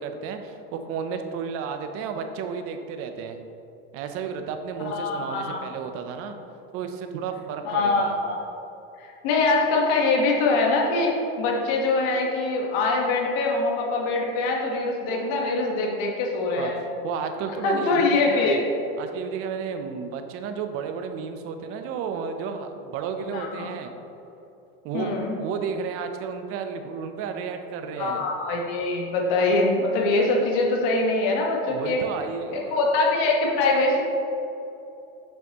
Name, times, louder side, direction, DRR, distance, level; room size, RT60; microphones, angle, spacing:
voice 1, 0.0-3.4 3.9-6.4 6.7-8.2 16.6-16.7 17.0-18.6 19.0-23.9 24.8-28.3 31.7-32.9, right 6 dB, 50° right, 7 dB, 0.6 m, -32 dB
voice 2, 4.8-5.6 7.6-8.4 9.0-16.8 17.6-18.6 23.3-23.7 24.9-25.3 28.0-32.0 32.5-34.0, left 3 dB, 70° left, -1 dB, 1.4 m, -23 dB
6.7 x 6.0 x 2.9 m, 2.9 s
supercardioid pair, 135°, 30 cm